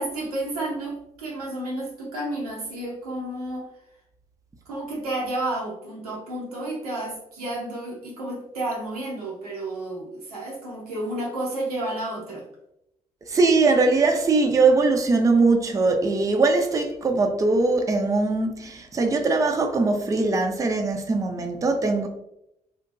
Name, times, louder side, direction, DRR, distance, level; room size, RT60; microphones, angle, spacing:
voice 1, 0.0-3.7 4.7-12.5, right 1 dB, 85° right, 0.6 m, -31 dB
voice 2, 13.3-22.1, right 3 dB, 20° right, 0.4 m, -21 dB
2.6 x 2.1 x 2.4 m
figure-of-eight pair, 40°, 19 cm